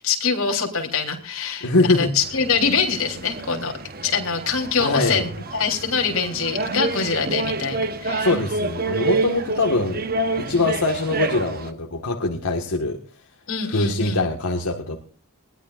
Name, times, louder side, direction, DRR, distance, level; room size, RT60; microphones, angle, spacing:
voice 1, 0.0-3.7 4.0-8.3 10.5-10.7 13.5-14.3, left 5 dB, 70° left, 2 dB, 3.8 m, -24 dB
voice 2, 1.6-2.1 4.8-5.3 8.2-10.0 10.4-13.0 13.7-15.0, left 2 dB, 90° left, 1 dB, 1.8 m, -22 dB
sound 1, 2.2-11.7, right 3 dB, 40° right, 1.1 m, -28 dB
21.0 x 17.5 x 2.6 m, 0.40 s
head